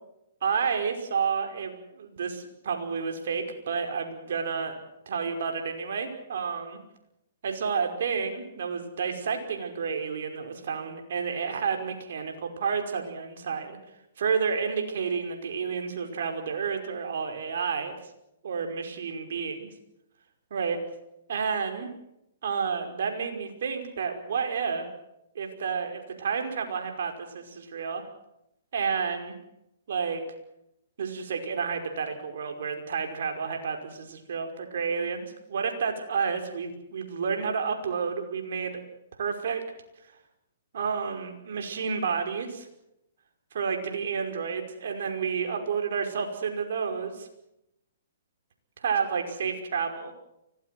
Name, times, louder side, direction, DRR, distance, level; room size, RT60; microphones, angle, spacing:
voice 1, 0.4-4.8 5.1-6.8 7.4-13.8 14.2-17.9 18.4-19.7 20.5-20.8 21.3-21.9 22.4-24.9 25.4-28.0 28.7-29.4 29.9-30.2 31.0-38.8 39.2-39.6 40.7-42.7 43.5-47.3 48.8-50.1, right 6 dB, 65° right, 4 dB, 5.4 m, -30 dB
24.5 x 18.5 x 7.9 m, 0.83 s
hypercardioid pair, 135°, 0 cm